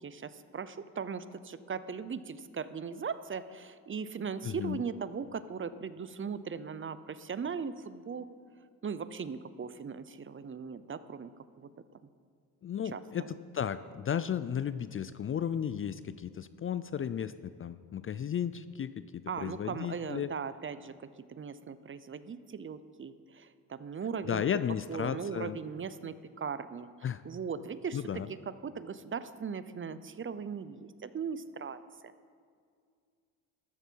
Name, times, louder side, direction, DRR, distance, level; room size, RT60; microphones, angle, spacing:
voice 1, 0.0-8.3 8.8-11.3 11.6-11.7 12.9-13.3 19.3-20.9 21.3-24.4 24.9-26.9 27.2-28.0 28.6-31.8, right 6 dB, 30° right, 14 dB, 0.7 m, -38 dB
voice 2, 4.4-4.8 12.6-17.3 17.6-20.3 24.2-25.6 27.0-27.2 27.9-28.3, left 8 dB, 30° left, 14 dB, 0.5 m, -34 dB
13.5 x 12.5 x 4.6 m, 2.2 s
supercardioid pair, 75°, 41 cm